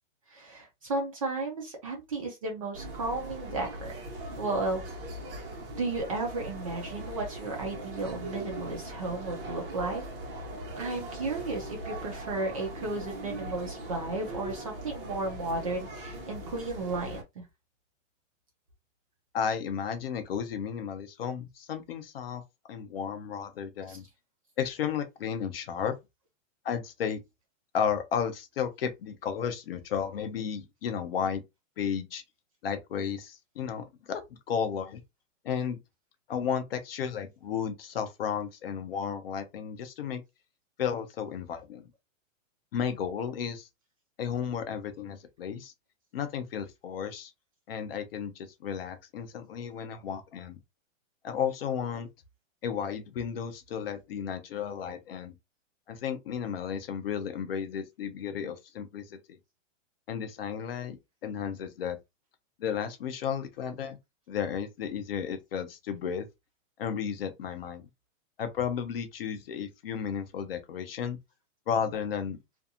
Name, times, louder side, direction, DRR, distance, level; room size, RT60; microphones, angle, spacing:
voice 1, 0.3-4.0 4.4-4.8 5.8-10.0 10.7-17.4 23.9-24.0, right 2 dB, 30° right, 0.4 m, -34 dB
sound 1, 2.7-17.2, right 1 dB, 45° right, 1.0 m, -40 dB
voice 2, 19.3-22.4 22.7-24.0 24.6-25.9 26.6-27.2 27.7-31.4 31.8-32.2 32.6-34.2 34.5-35.0 35.4-35.8 36.3-40.2 40.8-41.9 42.7-43.7 44.2-45.7 46.1-47.3 47.7-50.6 51.2-52.1 52.6-55.3 55.9-59.4 60.1-61.0 61.2-62.0 62.6-64.0 64.3-66.3 66.8-67.9 68.4-71.2 71.7-72.4, left 7 dB, 50° left, 0.5 m, -33 dB
2.5 x 2.3 x 2.7 m
hypercardioid pair, 165°, 39 cm